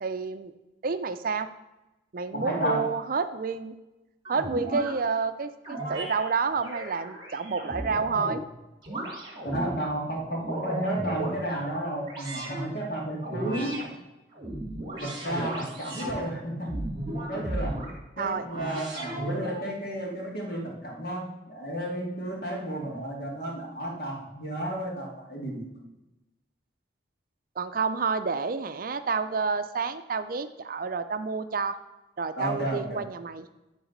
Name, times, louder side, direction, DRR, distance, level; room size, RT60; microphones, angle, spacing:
voice 1, 0.0-0.5 0.8-1.5 2.1-3.8 4.3-8.4 18.2-18.5 27.6-31.8 32.2-33.5, right 5 dB, 50° right, 10 dB, 0.5 m, -29 dB
voice 2, 2.3-2.8 9.4-13.8 15.0-16.7 17.3-17.8 18.2-25.9 32.4-33.0, right 1 dB, 55° left, -2 dB, 2.4 m, -32 dB
sound 1, 4.2-4.9 5.6-6.2 6.6-8.4 8.8-9.7 10.2-11.4 12.0-12.6 13.2-13.9 14.3-16.2 16.7-17.9 18.5-19.7, right 1 dB, 25° right, 2.2 m, -35 dB
10.5 x 4.0 x 6.6 m, 1.0 s
head